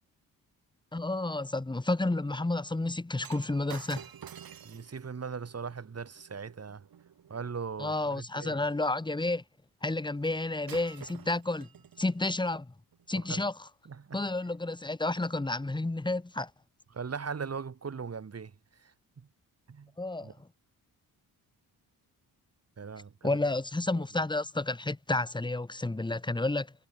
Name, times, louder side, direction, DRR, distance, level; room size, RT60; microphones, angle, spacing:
voice 1, 0.9-4.1 7.8-9.4 9.8-11.7 12.0-12.7 13.1-13.5 14.1-16.5 20.0-20.3 23.2-26.7, left 2 dB, 10° left, 1.3 m, -31 dB
Shatter, 3.2-7.6 10.2-10.4 10.7-12.2 12.9-13.1, right 8 dB, 65° right, 3.5 m, -50 dB
voice 2, 4.6-6.9 7.3-8.6 13.1-13.4 13.9-14.2 16.9-18.9 19.7-19.9 20.2-20.3 22.8-23.6 23.9-24.0, right 5 dB, 40° right, 2.6 m, -39 dB
cardioid pair, 80°, 38 cm